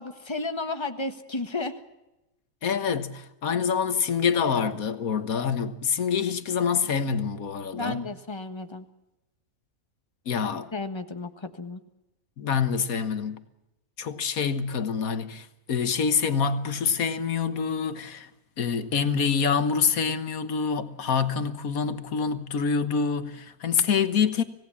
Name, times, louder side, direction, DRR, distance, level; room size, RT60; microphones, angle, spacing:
voice 1, 0.0-1.8 7.7-8.8 10.7-11.8, left 2 dB, 20° left, 1.5 m, -33 dB
voice 2, 2.6-8.1 10.3-10.7 12.4-13.4 14.0-18.3 18.6-24.4, left 6 dB, 70° left, 1.7 m, -26 dB
25.5 x 18.0 x 7.1 m
omnidirectional pair, 1.5 m